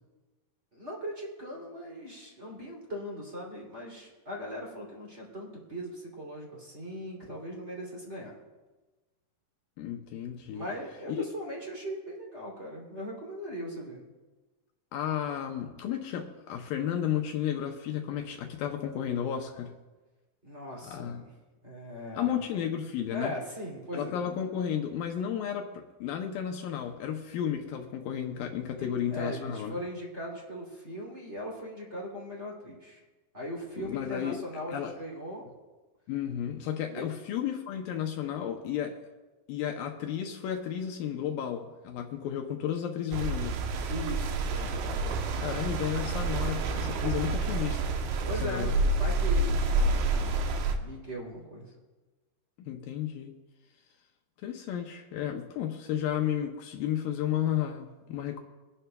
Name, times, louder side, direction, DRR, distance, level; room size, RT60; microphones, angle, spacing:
voice 1, 0.7-8.3 10.5-14.0 20.4-21.3 21.6-22.4 23.1-24.1 28.8-33.0 33.3-35.5 36.9-37.0 43.9-44.7 48.2-50.4 50.8-51.7, equal, 20° right, -3 dB, 2.6 m, -39 dB
voice 2, 9.8-10.7 11.1-11.2 14.9-19.8 20.8-21.2 22.2-23.3 23.9-29.7 33.8-34.4 34.7-34.9 36.1-39.0 39.5-43.6 45.4-47.8 48.4-48.7 52.6-53.3 54.4-58.4, left 9 dB, 75° left, 4 dB, 2.2 m, -33 dB
sound 1, 43.1-50.7, right 3 dB, 75° right, 2.7 m, -28 dB
24.5 x 11.0 x 2.3 m, 1.2 s
omnidirectional pair, 4.6 m